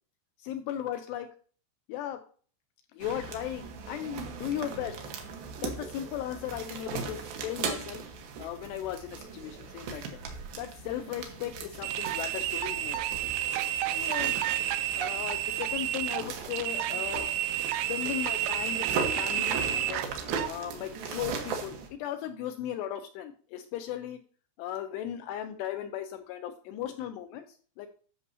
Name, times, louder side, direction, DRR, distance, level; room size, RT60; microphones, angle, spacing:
voice 1, 0.4-1.3 1.9-2.3 2.9-5.0 5.6-8.0 8.4-10.2 10.6-13.0 13.9-14.4 14.9-17.3 17.9-20.1 20.5-24.2 24.6-27.9, left 11 dB, 85° left, 7 dB, 2.4 m, -37 dB
sound 1, 3.0-21.9, right 5 dB, 65° right, 2.5 m, -39 dB
sound 2, 11.8-20.5, right 11 dB, 85° right, 2.8 m, -31 dB
11.0 x 6.8 x 2.7 m, 0.42 s
omnidirectional pair, 5.5 m